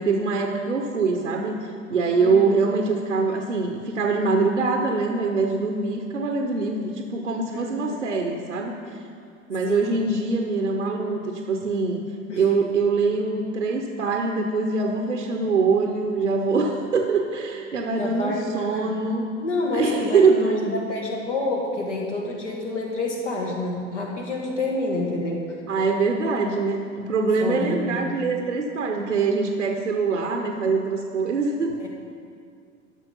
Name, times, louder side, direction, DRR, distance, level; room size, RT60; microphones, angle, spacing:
voice 1, 0.0-9.0 9.5-12.0 12.3-19.3 19.7-20.7 25.7-31.9, right 4 dB, 85° right, 3 dB, 0.8 m, -23 dB
voice 2, 2.2-2.5 7.5-8.1 9.7-9.9 12.3-12.4 18.0-19.0 19.4-25.4 27.4-28.3 31.8-31.9, left 2 dB, 75° left, -1 dB, 1.8 m, -28 dB
12.0 x 6.3 x 5.5 m, 2.3 s
figure-of-eight pair, 75°, 37 cm